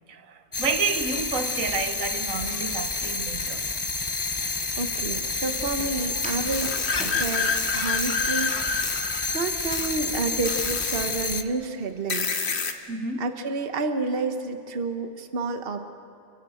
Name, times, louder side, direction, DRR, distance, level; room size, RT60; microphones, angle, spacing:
voice 1, 0.1-3.6 12.9-13.2, right 5 dB, 75° right, 1.6 m, -30 dB
sound 1, 0.5-11.4, left 3 dB, 25° left, 0.7 m, -29 dB
Walk footsteps, 3.3-7.9, equal, 5° right, 3.9 m, -42 dB
voice 2, 4.8-6.8 7.0-8.7 9.3-12.4 13.2-15.8, right 3 dB, 45° right, 1.4 m, -30 dB
sound 2, 6.5-9.5 9.7-9.9 10.4-11.2 12.1-12.7, left 5 dB, 55° left, 1.5 m, -28 dB
29.0 x 17.5 x 7.8 m
omnidirectional pair, 1.4 m